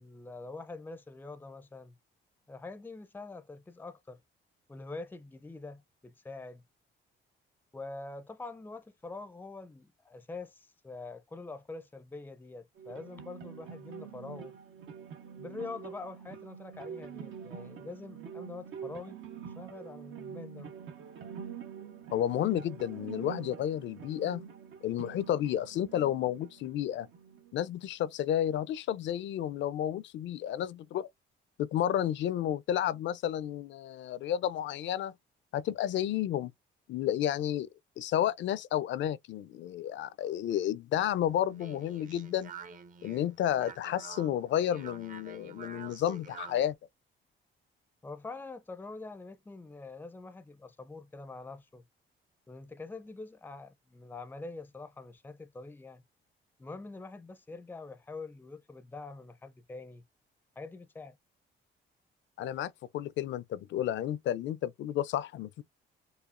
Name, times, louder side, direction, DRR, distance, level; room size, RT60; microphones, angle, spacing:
voice 1, 0.0-2.0 2.5-4.2 4.7-6.6 7.7-14.6 15.4-19.2 19.6-20.7 48.0-51.8 52.5-56.0 56.6-60.0 60.6-61.2, left 3 dB, 10° left, 0.4 m, -45 dB
sound 1, 12.8-27.7, right 7 dB, 80° right, 1.0 m, -46 dB
voice 2, 22.1-24.4 24.8-27.1 27.5-31.1 31.6-35.1 35.5-36.5 36.9-37.7 38.0-42.5 43.0-46.7 62.4-65.6, left 11 dB, 70° left, 0.5 m, -31 dB
Speech, 41.3-46.7, right 5 dB, 40° right, 0.7 m, -48 dB
4.9 x 2.3 x 2.5 m
cardioid pair, 90°, 20 cm